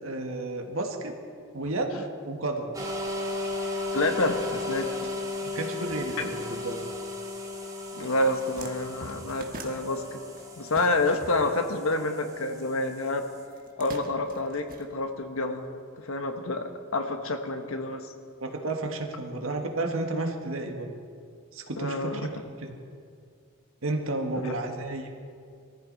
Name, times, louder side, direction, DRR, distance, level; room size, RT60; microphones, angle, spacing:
voice 1, 0.0-1.1 1.5-2.8 5.5-6.8 18.4-20.9 21.5-22.8 23.8-25.1, right 2 dB, 70° right, 3 dB, 1.8 m, -32 dB
sound 1, 2.7-13.4, left 2 dB, 15° right, 2.0 m, -36 dB
voice 2, 3.9-4.9 7.9-10.2 10.6-13.2 13.8-15.7 16.0-18.1 21.8-22.3 24.3-24.6, left 2 dB, 75° left, 6 dB, 1.3 m, -28 dB
sound 2, 7.8-8.0 8.2-11.4 11.6-12.8 13.5-15.5, right 3 dB, 45° right, 1.4 m, -45 dB
sound 3, 9.3-14.7, left 1 dB, 40° left, 2.4 m, -51 dB
22.5 x 14.0 x 4.1 m, 2.2 s
head